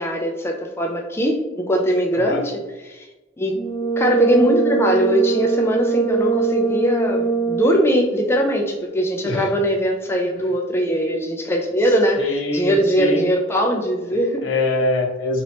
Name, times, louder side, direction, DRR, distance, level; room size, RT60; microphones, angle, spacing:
voice 1, 0.0-3.1 3.4-3.6 4.0-14.4, equal, 15° left, 2 dB, 0.3 m, -21 dB
Brass instrument, 3.5-7.9, right 5 dB, 30° left, 0.8 m, -22 dB
voice 2, 12.2-13.3 14.4-15.4, left 2 dB, 80° left, 3 dB, 0.6 m, -23 dB
3.0 x 2.9 x 2.7 m, 1.1 s
head